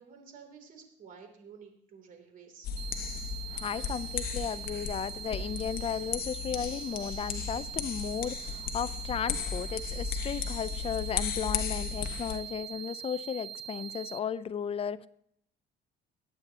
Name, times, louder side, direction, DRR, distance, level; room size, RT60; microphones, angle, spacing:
voice 1, 0.0-2.7, right 6 dB, 55° right, 3.1 m, -52 dB
sound 1, 2.6-12.4, left 7 dB, 60° left, 1.3 m, -36 dB
sound 2, 2.8-14.2, right 9 dB, 85° right, 0.5 m, -43 dB
voice 2, 3.5-15.1, left 8 dB, 35° left, 0.5 m, -35 dB
21.0 x 9.1 x 2.9 m
cardioid pair, 110°, 17 cm